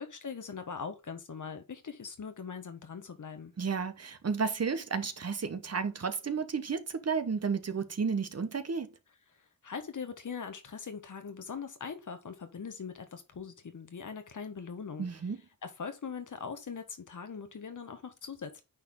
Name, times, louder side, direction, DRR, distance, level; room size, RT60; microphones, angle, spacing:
voice 1, 0.0-3.5 9.6-15.1 15.6-18.6, left 6 dB, 55° left, 1.5 m, -41 dB
voice 2, 3.6-8.9 15.0-15.4, right 5 dB, 45° right, 1.1 m, -32 dB
9.2 x 4.3 x 3.8 m
cardioid pair, 80°, 35 cm